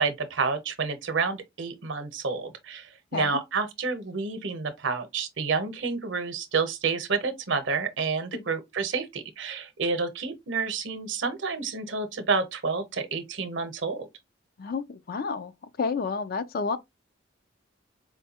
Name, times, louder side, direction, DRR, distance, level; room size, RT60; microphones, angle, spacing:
voice 1, 0.0-14.1, right 4 dB, 70° right, 0.8 m, -29 dB
voice 2, 14.6-15.5 15.8-16.8, left 4 dB, 50° left, 0.4 m, -30 dB
4.5 x 2.2 x 2.8 m
head